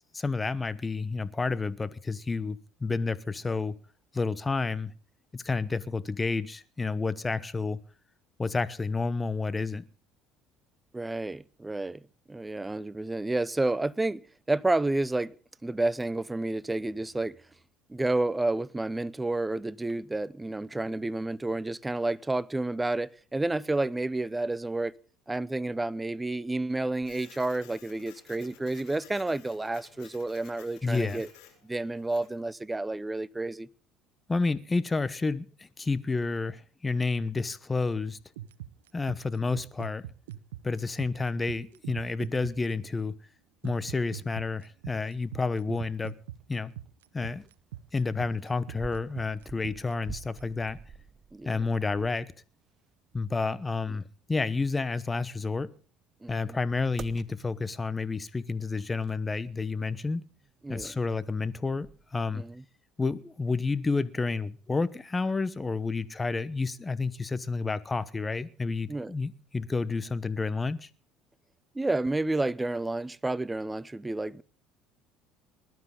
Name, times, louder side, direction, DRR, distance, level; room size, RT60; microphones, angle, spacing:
voice 1, 0.1-3.8 4.1-4.9 5.3-7.8 8.4-9.9 30.8-31.2 34.3-38.2 38.9-40.0 40.6-43.2 43.6-46.1 46.5-46.7 47.1-47.5 47.9-50.8 51.4-52.3 53.1-55.7 56.3-60.2 60.7-62.4 63.0-70.9, left 4 dB, 20° left, 1.0 m, -30 dB
voice 2, 10.9-12.0 12.3-14.2 14.5-15.3 15.6-17.4 17.9-24.9 25.3-31.3 31.6-33.7 51.3-51.5 56.2-56.6 60.6-60.9 62.3-62.6 68.9-69.1 71.7-74.4, right 2 dB, 15° right, 0.7 m, -30 dB
Printer, 27.0-32.4, left 9 dB, 70° left, 6.9 m, -54 dB
sound 1, 38.2-42.7 43.6-50.4, right 13 dB, 90° right, 0.9 m, -41 dB
sound 2, 43.4-62.6, right 6 dB, 40° right, 0.9 m, -52 dB
20.5 x 12.5 x 3.9 m
supercardioid pair, 75°, 0 cm